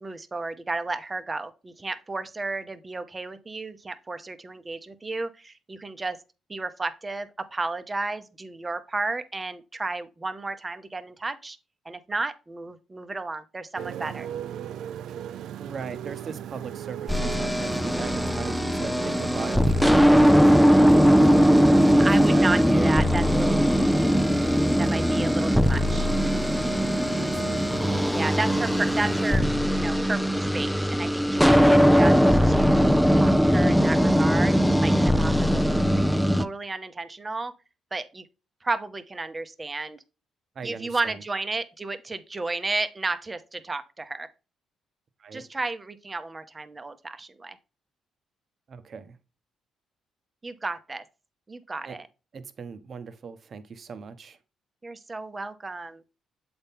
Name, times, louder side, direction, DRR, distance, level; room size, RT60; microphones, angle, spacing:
voice 1, 0.0-6.2 6.5-11.6 11.8-14.3 22.0-23.9 24.8-26.1 28.0-37.5 37.9-38.2 38.6-40.0 40.6-44.3 45.3-47.6 50.4-51.0 51.5-52.1 54.8-56.0, right 3 dB, 25° right, 0.8 m, -33 dB
Motorcycle, 13.8-29.4, right 10 dB, 75° right, 0.4 m, -38 dB
voice 2, 15.6-22.5 27.2-27.6 40.5-41.2 45.2-45.5 48.7-49.2 51.8-52.0 52.3-54.4, right 5 dB, 50° right, 0.9 m, -38 dB
sound 1, 17.1-36.4, equal, ahead, 0.5 m, -20 dB
7.8 x 4.2 x 3.6 m
cardioid pair, 90°, 0 cm